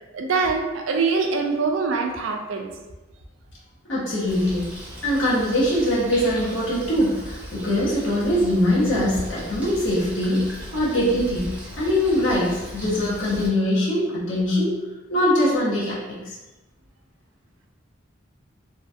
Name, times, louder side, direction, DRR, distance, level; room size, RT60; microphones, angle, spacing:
voice 1, 0.1-2.7, right 4 dB, 85° right, 3 dB, 0.4 m, -23 dB
voice 2, 3.8-4.7 5.0-14.7 15.1-16.4, left 1 dB, 75° left, -6 dB, 0.9 m, -22 dB
Bird, 4.3-13.5, equal, 5° right, 0.7 m, -37 dB
2.8 x 2.4 x 2.6 m, 1.1 s
head